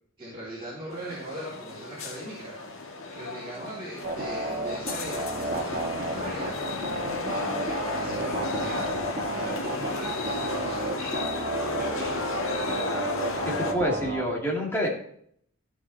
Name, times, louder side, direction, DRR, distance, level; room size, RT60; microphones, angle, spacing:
voice 1, 0.2-6.7 7.3-8.9 9.3-12.4, right 1 dB, 25° right, -9 dB, 3.6 m, -40 dB
sound 1, 0.9-13.7, left 2 dB, 85° left, 1.5 m, -33 dB
sound 2, 4.0-14.2, right 2 dB, 40° right, 1.7 m, -32 dB
voice 2, 13.5-14.9, equal, 10° left, -3 dB, 2.5 m, -27 dB
13.5 x 6.1 x 4.2 m, 0.65 s
head